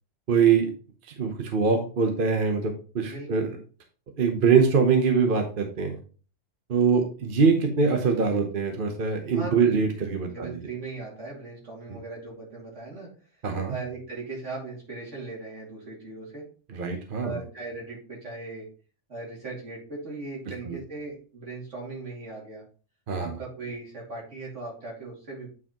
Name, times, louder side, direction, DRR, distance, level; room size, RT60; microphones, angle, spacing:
voice 1, 0.3-0.7 1.2-3.5 4.2-6.0 6.7-10.6 11.9-12.0 13.4-13.7 16.7-17.4 20.7-20.8 23.1-23.3, right 5 dB, 45° right, 4 dB, 1.0 m, -23 dB
voice 2, 3.0-3.6 9.3-9.8 10.2-13.1 13.7-16.4 17.2-18.7 19.1-22.6 23.2-25.5, right 3 dB, 70° right, -3 dB, 2.9 m, -38 dB
8.4 x 4.8 x 2.9 m, 0.38 s
omnidirectional pair, 1.3 m